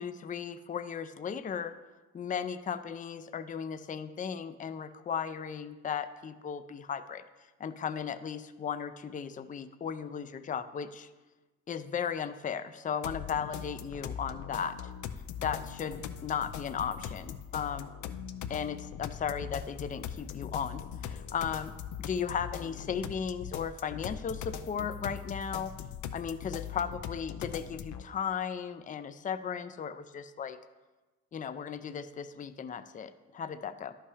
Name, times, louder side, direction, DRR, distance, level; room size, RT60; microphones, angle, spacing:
voice 1, 0.0-1.7 2.1-7.2 7.6-11.1 11.7-14.8 15.4-17.9 18.5-21.7 22.1-25.7 26.1-30.6 31.3-33.9, left 7 dB, 25° left, 11 dB, 0.4 m, -36 dB
sound 1, 13.0-28.0, left 9 dB, 70° left, 0.6 m, -41 dB
11.0 x 5.6 x 4.9 m, 1.2 s
cardioid pair, 90°, 30 cm